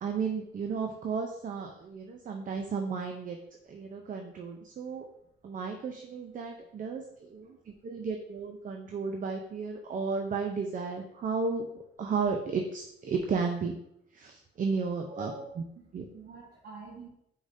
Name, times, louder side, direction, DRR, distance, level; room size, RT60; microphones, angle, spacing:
voice 1, 0.0-3.4 3.7-5.0 5.4-11.7 12.0-13.8 14.1-15.6 15.9-16.1, right 5 dB, 40° right, 3 dB, 0.5 m, -33 dB
voice 2, 15.1-17.1, right 2 dB, 60° right, -4 dB, 1.1 m, -46 dB
4.9 x 3.9 x 2.6 m, 0.75 s
cardioid pair, 90°, 20 cm